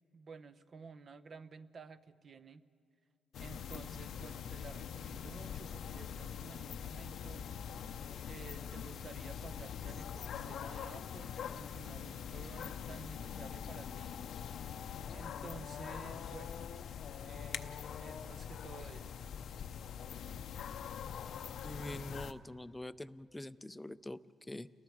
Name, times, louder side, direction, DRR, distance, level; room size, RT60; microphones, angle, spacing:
voice 1, 0.1-2.6 3.4-7.5 8.2-14.1 15.1-16.6 17.2-19.2, right 4 dB, 45° right, 12 dB, 0.7 m, -52 dB
sound 1, 3.3-22.3, left 8 dB, 70° left, 0.7 m, -43 dB
voice 2, 21.6-24.7, left 1 dB, 10° left, 14 dB, 0.5 m, -45 dB
29.5 x 19.5 x 4.7 m, 2.3 s
cardioid pair, 90°, 0 cm